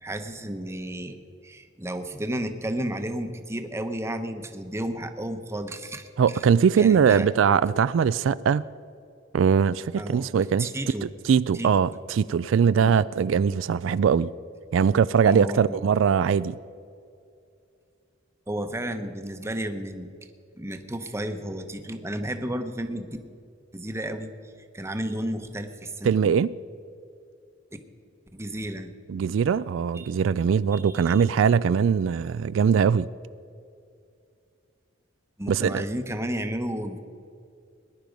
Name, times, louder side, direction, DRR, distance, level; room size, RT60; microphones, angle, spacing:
voice 1, 0.0-6.4 6.8-7.3 10.0-10.3 10.6-11.1 11.5-11.9 12.8-12.9 15.2-15.8 18.5-20.1 20.5-23.2 23.7-24.3 24.7-26.2 28.3-28.9 30.0-30.2 30.7-31.2 35.4-37.0, right 1 dB, 15° right, 7 dB, 0.9 m, -32 dB
voice 2, 6.2-8.6 9.3-10.7 11.0-14.3 14.7-16.6 26.0-26.5 29.1-33.1 35.5-35.8, right 7 dB, 85° right, 17 dB, 0.3 m, -21 dB
19.5 x 11.0 x 5.2 m, 2.4 s
head